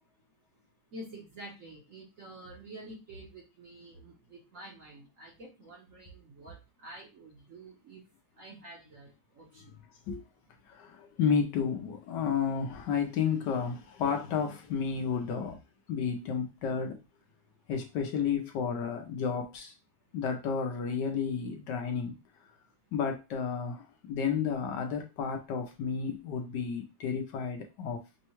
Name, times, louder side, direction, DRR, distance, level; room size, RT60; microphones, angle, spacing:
voice 1, 0.9-8.0 8.3-9.8, right 1 dB, 55° right, 1.0 m, -48 dB
voice 2, 10.7-15.6 15.9-17.0 17.7-19.7 20.1-22.1 22.9-28.0, left 6 dB, 75° left, 1.1 m, -32 dB
5.4 x 2.1 x 3.0 m
omnidirectional pair, 2.1 m